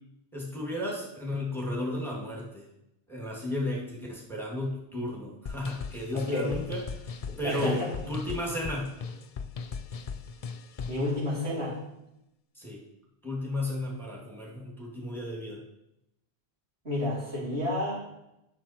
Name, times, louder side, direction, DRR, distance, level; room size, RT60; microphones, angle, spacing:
voice 1, 0.3-2.6 3.1-6.8 7.4-7.8 8.1-8.9 12.6-12.8 13.2-15.6, left 1 dB, ahead, -4 dB, 2.3 m, -33 dB
sound 1, 5.5-11.1, left 5 dB, 45° left, 0.5 m, -38 dB
voice 2, 6.1-6.5 7.4-7.9 10.9-11.7 16.8-18.0, left 1 dB, 90° right, -8 dB, 4.4 m, -30 dB
11.5 x 6.3 x 4.4 m, 0.84 s
omnidirectional pair, 1.1 m